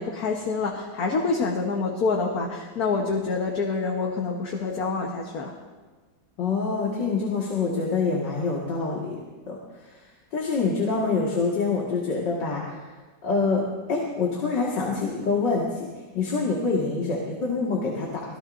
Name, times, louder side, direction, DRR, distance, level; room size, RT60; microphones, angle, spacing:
voice 1, 0.0-5.5, left 4 dB, 60° left, 0 dB, 1.6 m, -27 dB
voice 2, 6.4-9.2 9.5-9.6 10.3-12.8 13.2-15.7 16.1-18.1, left 4 dB, 80° left, -3 dB, 2.6 m, -25 dB
25.5 x 17.0 x 2.6 m, 1.4 s
omnidirectional pair, 1.9 m